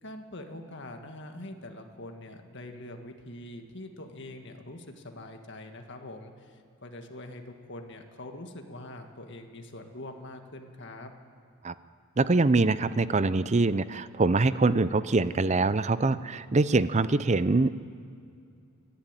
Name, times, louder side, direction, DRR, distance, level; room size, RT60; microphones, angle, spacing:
voice 1, 0.0-11.1, left 1 dB, 50° left, 4 dB, 1.8 m, -44 dB
voice 2, 12.2-17.7, right 3 dB, 30° right, 15 dB, 0.5 m, -24 dB
29.5 x 11.5 x 9.1 m, 2.5 s
head